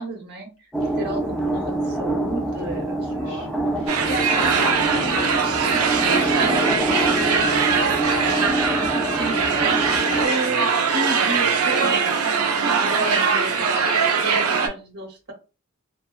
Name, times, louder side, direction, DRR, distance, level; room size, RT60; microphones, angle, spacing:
voice 1, 0.0-0.7 1.0-3.5 8.9-9.4 10.2-15.3, right 2 dB, 50° right, 0.8 m, -33 dB
sound 1, 0.7-10.3, right 1 dB, ahead, 0.3 m, -26 dB
voice 2, 3.1-3.5 3.8-10.4 12.8-13.2, left 1 dB, 80° left, 1.1 m, -35 dB
sound 2, 3.9-14.7, right 5 dB, 70° right, 0.4 m, -21 dB
2.6 x 2.0 x 2.3 m
head